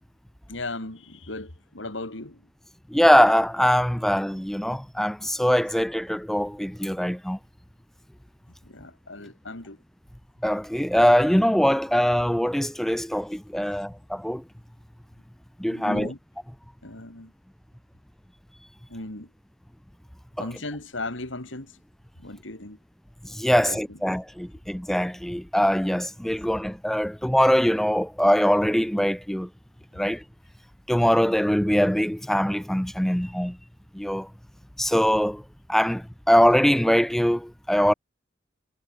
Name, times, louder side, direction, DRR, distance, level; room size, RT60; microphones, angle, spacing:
voice 1, 0.5-2.4 8.6-9.8 15.7-16.2 16.8-17.3 18.9-19.3 20.4-21.8 22.2-22.8 23.5-24.0, left 2 dB, 80° left, 3.3 m, -37 dB
voice 2, 2.9-7.4 10.4-14.4 15.6-16.1 20.4-20.5 23.2-29.5 29.9-30.2 30.9-33.6 33.9-34.3 34.8-35.4 35.7-37.9, equal, ahead, 0.4 m, -22 dB
head